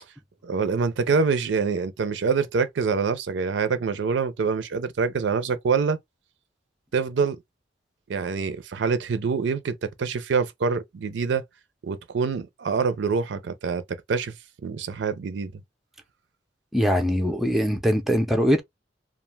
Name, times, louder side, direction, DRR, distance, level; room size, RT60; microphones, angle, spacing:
voice 1, 0.4-6.0 6.9-7.4 8.1-11.4 11.8-13.8 14.1-14.4 14.6-15.5, right 5 dB, 70° right, 0.4 m, -25 dB
voice 2, 16.7-18.6, equal, ahead, 0.4 m, -22 dB
2.4 x 2.1 x 3.2 m
head